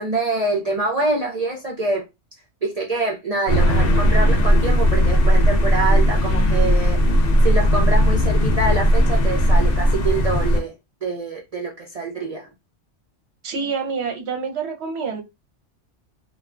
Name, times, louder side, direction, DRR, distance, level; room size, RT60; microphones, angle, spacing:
voice 1, 0.0-2.0 2.6-7.0 7.4-10.7 11.0-12.5, right 2 dB, 45° right, 0.5 m, -25 dB
sound 1, 3.5-10.6, equal, 55° left, 0.8 m, -17 dB
voice 2, 13.4-15.2, right 5 dB, 65° right, 1.0 m, -27 dB
3.2 x 2.3 x 2.4 m
omnidirectional pair, 1.2 m